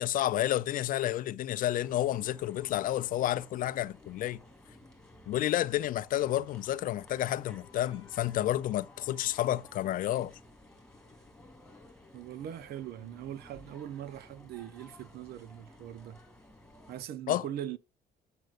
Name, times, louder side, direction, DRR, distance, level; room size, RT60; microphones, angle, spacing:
voice 1, 0.0-4.4 5.3-10.3 17.3-17.4, left 13 dB, 55° left, 0.4 m, -30 dB
sound 1, 1.7-17.0, left 1 dB, 5° left, 2.6 m, -55 dB
sound 2, 7.6-9.6, left 22 dB, 25° right, 4.5 m, -62 dB
voice 2, 12.1-16.2 16.9-17.8, right 11 dB, 65° right, 0.6 m, -41 dB
7.8 x 7.6 x 2.4 m
cardioid pair, 110°, 17 cm